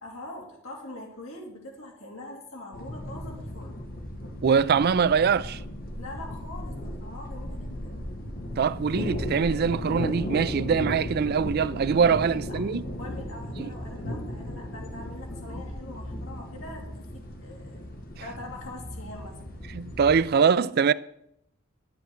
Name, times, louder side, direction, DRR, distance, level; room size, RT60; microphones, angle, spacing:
voice 1, 0.0-3.8 6.0-8.0 12.0-12.6 13.0-17.8 18.2-19.4 20.4-20.9, left 1 dB, 75° left, 2.5 m, -43 dB
sound 1, 2.7-20.3, equal, 45° left, 1.5 m, -36 dB
voice 2, 4.4-5.6 8.6-12.8 13.6-13.7 19.7-20.9, right 6 dB, 50° right, 0.4 m, -23 dB
12.5 x 9.4 x 4.5 m
head